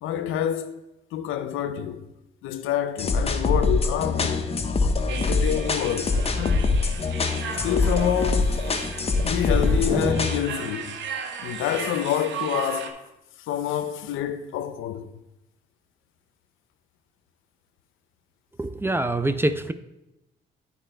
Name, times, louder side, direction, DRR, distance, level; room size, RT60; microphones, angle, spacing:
voice 1, 0.0-0.8 1.1-2.1 2.4-4.5 5.1-6.7 7.6-8.6 9.2-11.0 11.4-13.0 13.5-15.1, left 10 dB, 85° left, 0.6 m, -27 dB
sound 1, 3.0-10.4, left 3 dB, 30° left, 0.7 m, -24 dB
sound 2, 5.1-12.9, right 7 dB, 70° right, 0.8 m, -36 dB
sound 3, 6.0-7.6 7.9-8.2 8.5-10.3, right 2 dB, 35° right, 1.9 m, -34 dB
voice 2, 18.6-19.7, right 2 dB, 10° right, 0.4 m, -25 dB
8.9 x 4.2 x 4.4 m
cardioid pair, 90°, 20 cm